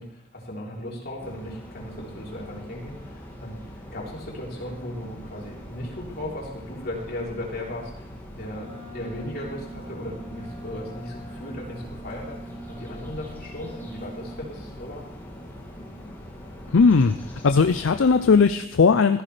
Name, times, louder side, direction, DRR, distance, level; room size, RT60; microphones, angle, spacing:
voice 1, 0.0-8.1 8.4-15.0, left 1 dB, 50° left, -3 dB, 3.5 m, -37 dB
sound 1, 1.2-18.4, equal, 10° left, 2.2 m, -42 dB
Wind instrument woodwind instrument, 8.5-14.5, equal, 40° right, 4.6 m, -43 dB
voice 2, 16.7-17.2 17.4-19.2, left 5 dB, 70° left, 8 dB, 0.5 m, -18 dB
14.5 x 14.5 x 3.3 m, 0.83 s
head